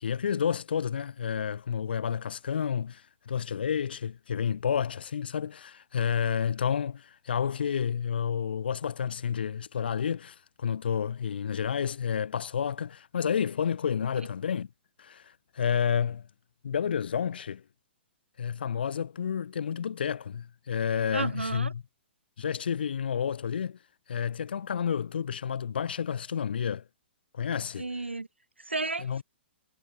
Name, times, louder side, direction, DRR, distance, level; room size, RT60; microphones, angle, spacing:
voice 1, 0.0-14.7 15.0-15.2 15.5-16.3 16.6-17.6 18.4-21.8 22.4-23.8 24.1-26.8 27.3-27.9 29.0-29.2, left 7 dB, 60° left, 0.5 m, -30 dB
voice 2, 21.1-21.7 27.8-28.3 28.6-29.2, right 3 dB, 80° right, 0.6 m, -32 dB
figure-of-eight pair, 115°, 6 cm